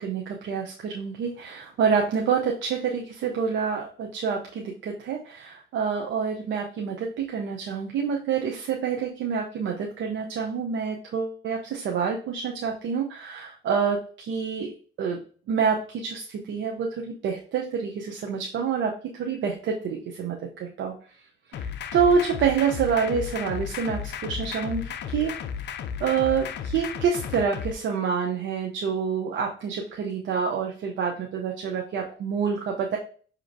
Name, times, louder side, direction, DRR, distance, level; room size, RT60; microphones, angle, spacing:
voice 1, 0.0-14.7 15.0-15.2 15.5-20.9 21.6-25.3 26.0-33.0, right 6 dB, 75° right, 1 dB, 0.7 m, -27 dB
sound 1, 21.5-27.7, left 7 dB, 60° left, 0.4 m, -34 dB
5.8 x 2.9 x 2.5 m, 0.42 s
cardioid pair, 90°, 20 cm